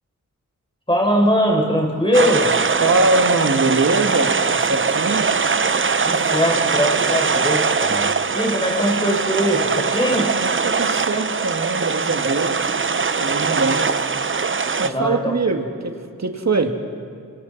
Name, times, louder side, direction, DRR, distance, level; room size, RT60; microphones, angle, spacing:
voice 1, 0.9-2.6 6.0-10.4 14.8-15.3, equal, 15° left, 0 dB, 5.1 m, -21 dB
sound 1, 1.2-11.1 11.5-12.4, right 2 dB, 20° right, 6.4 m, -43 dB
sound 2, 2.1-14.9, right 5 dB, 40° right, 0.7 m, -21 dB
voice 2, 2.8-5.3 10.4-12.7 13.2-13.9 14.8-16.7, right 3 dB, 55° right, 4 dB, 2.1 m, -22 dB
30.0 x 26.0 x 4.2 m, 2.2 s
wide cardioid pair, 55°, 33 cm